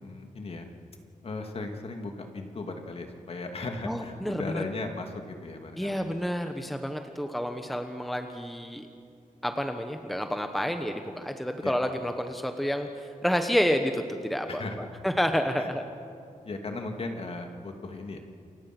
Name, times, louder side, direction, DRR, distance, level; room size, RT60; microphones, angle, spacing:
voice 1, 0.0-0.7 1.2-6.0 11.6-11.7 14.5-14.8 15.6-15.7 16.4-18.2, left 3 dB, 45° left, 4 dB, 2.4 m, -37 dB
voice 2, 3.8-4.6 5.8-8.9 9.4-15.9, equal, ahead, 6 dB, 1.2 m, -29 dB
29.0 x 24.5 x 6.1 m, 2.4 s
wide cardioid pair, 125°, 14 cm